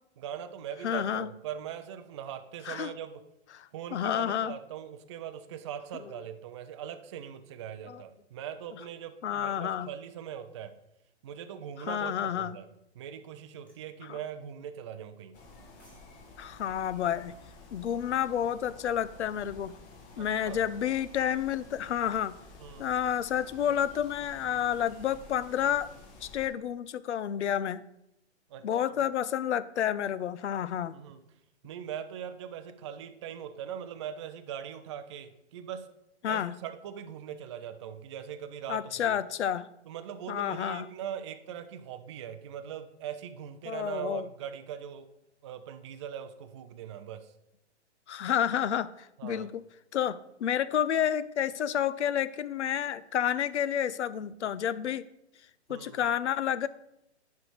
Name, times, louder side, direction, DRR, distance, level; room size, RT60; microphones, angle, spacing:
voice 1, 0.2-3.2 3.7-10.7 11.2-12.7 12.9-15.4 20.2-20.6 22.6-22.9 28.5-28.9 30.9-31.2 31.6-35.9 36.3-39.2 39.9-45.1 45.4-47.3 49.2-49.5 55.7-56.0, right 9 dB, 25° right, 8 dB, 0.3 m, -41 dB
voice 2, 0.8-1.3 2.7-2.9 3.5-4.5 7.9-8.0 9.2-9.9 11.8-12.6 14.1-14.2 16.4-17.3 17.7-19.7 20.2-22.3 22.8-25.9 26.2-27.8 28.6-31.0 36.2-36.5 38.7-39.7 40.3-40.9 43.7-44.3 48.1-49.6 49.9-55.1 55.7-56.7, left 9 dB, 80° left, 16 dB, 0.5 m, -30 dB
sound 1, 13.7-13.9 15.5-16.1 16.4-16.6, right 1 dB, 5° left, 1.3 m, -62 dB
sound 2, 15.3-26.5, left 3 dB, 25° left, 1.2 m, -51 dB
10.5 x 3.5 x 4.5 m, 0.84 s
hypercardioid pair, 130°, 34 cm